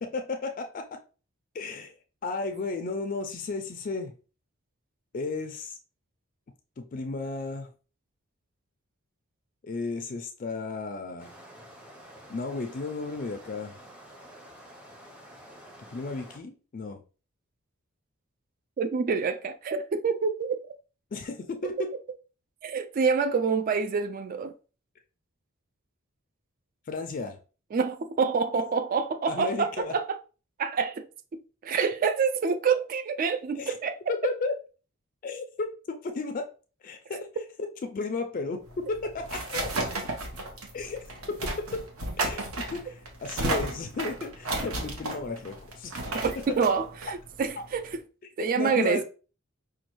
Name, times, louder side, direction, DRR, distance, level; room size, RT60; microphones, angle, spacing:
voice 1, 0.0-1.0 1.5-1.9 2.2-4.1 5.1-5.8 6.8-7.7 9.6-11.3 12.3-13.8 15.9-17.0 21.1-21.9 26.9-27.4 29.3-29.9 33.5-33.7 34.1-34.5 35.2-36.5 36.8-37.3 37.6-39.7 40.7-41.0 41.3-41.8 42.2-45.9 48.4-49.0, left 3 dB, 40° left, 0.4 m, -34 dB
sound 1, 11.2-16.4, equal, 5° right, 0.6 m, -49 dB
voice 2, 18.8-20.6 22.6-24.5 27.7-30.2 30.6-31.1 31.6-34.0 46.1-48.0 48.4-49.0, right 5 dB, 40° right, 0.3 m, -27 dB
sound 2, 38.7-48.0, right 2 dB, 70° right, 0.9 m, -34 dB
5.2 x 2.3 x 3.0 m
head